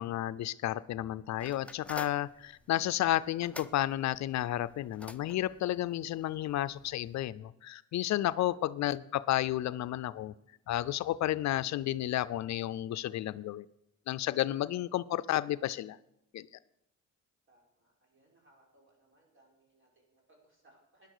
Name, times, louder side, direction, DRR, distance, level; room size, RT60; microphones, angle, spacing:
voice 1, 0.0-10.3 10.7-13.7 14.1-16.0 16.3-16.5, left 13 dB, 65° left, 16 dB, 0.5 m, -32 dB
sound 1, 1.4-7.3, left 2 dB, 5° left, 0.6 m, -50 dB
voice 2, 1.6-2.1 14.8-14.9 17.5-21.1, right 1 dB, 40° right, -1 dB, 5.5 m, -66 dB
12.5 x 10.0 x 6.6 m, 0.85 s
cardioid pair, 90°, 30 cm